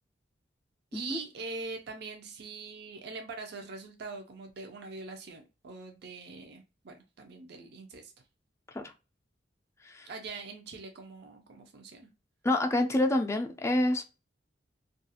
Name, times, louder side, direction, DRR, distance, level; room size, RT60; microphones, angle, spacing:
voice 1, 0.9-8.1 10.1-12.1, right 3 dB, 60° right, 0.5 m, -43 dB
voice 2, 12.4-14.0, left 1 dB, 15° left, 0.4 m, -27 dB
2.4 x 2.3 x 2.7 m
head